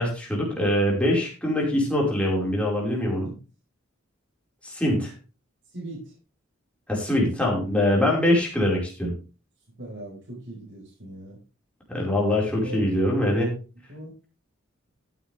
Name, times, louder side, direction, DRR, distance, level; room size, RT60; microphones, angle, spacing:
voice 1, 0.0-3.3 4.6-5.1 6.9-9.1 11.9-13.5, left 1 dB, 5° left, -3 dB, 5.4 m, -23 dB
voice 2, 5.7-6.1 9.8-11.4 12.6-13.5 13.9-14.1, right 1 dB, 65° right, -5 dB, 5.2 m, -39 dB
14.5 x 9.4 x 3.6 m, 0.34 s
head